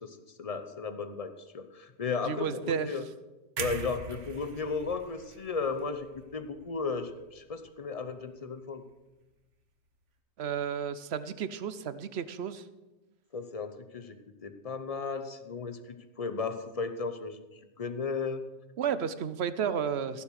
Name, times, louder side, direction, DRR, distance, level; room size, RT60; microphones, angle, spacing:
voice 1, 0.0-3.0 3.6-8.8 13.3-14.2 14.4-17.4 17.8-18.4, left 4 dB, 35° left, 9 dB, 0.9 m, -35 dB
voice 2, 2.2-2.9 10.4-12.6 18.8-20.2, right 7 dB, 65° right, 14 dB, 0.9 m, -32 dB
sound 1, 3.6-7.6 7.9-8.2, right 6 dB, 85° right, 1.4 m, -42 dB
15.5 x 7.4 x 6.4 m, 1.1 s
omnidirectional pair, 1.2 m